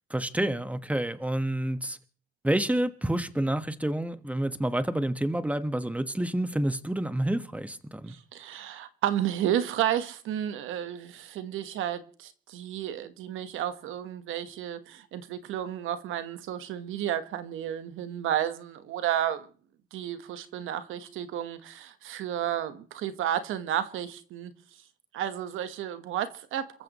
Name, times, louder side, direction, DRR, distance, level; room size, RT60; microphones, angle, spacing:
voice 1, 0.1-2.0 2.4-8.1, right 1 dB, 5° right, 1.4 m, -28 dB
voice 2, 8.1-19.5 19.9-24.5 25.1-26.8, right 10 dB, 85° right, 1.3 m, -32 dB
28.0 x 14.5 x 3.1 m
cardioid pair, 90°, 20 cm